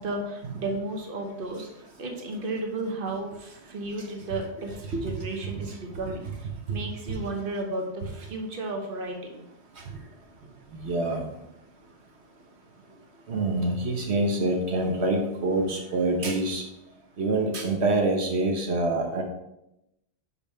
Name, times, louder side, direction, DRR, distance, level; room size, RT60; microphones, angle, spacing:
voice 1, 0.0-1.7 2.0-9.4, right 2 dB, 55° right, 2 dB, 1.2 m, -33 dB
voice 2, 10.8-11.2 13.3-16.6 17.2-19.2, right 2 dB, 80° right, 1 dB, 1.2 m, -25 dB
5.3 x 4.7 x 5.5 m, 0.87 s
omnidirectional pair, 1.1 m